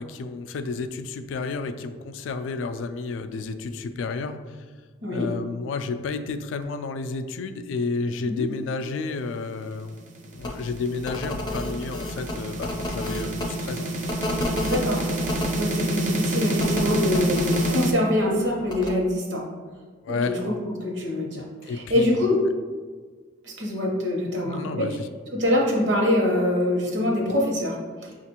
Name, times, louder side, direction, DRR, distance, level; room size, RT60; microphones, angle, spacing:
voice 1, 0.0-4.6 5.1-10.0 10.4-13.9 20.0-20.4 21.6-22.2 24.4-25.1, left 4 dB, 90° left, 9 dB, 0.3 m, -31 dB
sound 1, 9.8-17.9, right 1 dB, 40° right, 0.5 m, -28 dB
sound 2, 10.4-10.5 11.0-13.5 14.1-15.6 16.6-17.7 18.7-18.9, left 1 dB, 20° left, 0.4 m, -30 dB
voice 2, 14.7-15.0 15.6-19.5 20.1-20.5 20.8-22.4 23.4-24.9 25.3-27.8, left 1 dB, 70° right, -1 dB, 0.9 m, -24 dB
5.9 x 2.5 x 2.8 m, 1.5 s
head